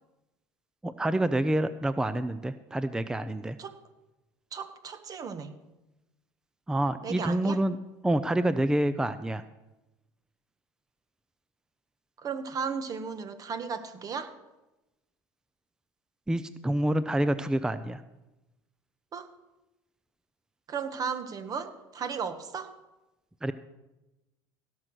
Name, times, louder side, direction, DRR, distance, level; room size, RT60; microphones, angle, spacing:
voice 1, 0.8-3.6 6.7-7.8 8.0-9.4 16.3-18.0 23.4-23.5, right 1 dB, 5° right, 13 dB, 0.5 m, -27 dB
voice 2, 4.5-5.6 7.0-7.6 12.2-14.4 19.1-19.3 20.7-22.8, right 6 dB, 40° right, 11 dB, 1.3 m, -35 dB
16.5 x 6.5 x 6.2 m, 1.0 s
supercardioid pair, 95°, 10 cm